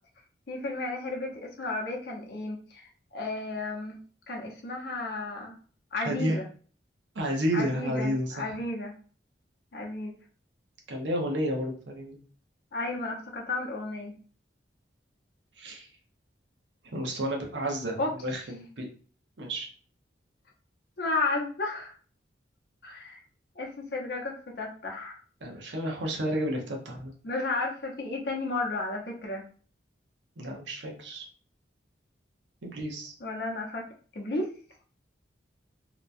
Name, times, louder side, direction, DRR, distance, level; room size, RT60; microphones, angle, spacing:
voice 1, 0.5-4.0 4.3-5.5 5.9-6.5 7.5-9.0 9.7-10.1 12.7-14.2 18.0-18.1 21.0-21.9 22.8-23.2 23.6-25.2 27.2-29.5 33.2-33.8 34.1-34.5, left 2 dB, 55° left, -1 dB, 0.7 m, -33 dB
voice 2, 6.0-6.4 7.1-8.6 10.9-12.2 15.6-15.9 16.9-18.9 19.4-19.7 25.4-27.1 30.4-31.2 32.6-33.1, equal, 75° right, 1 dB, 0.8 m, -31 dB
2.8 x 2.2 x 2.5 m, 0.42 s
head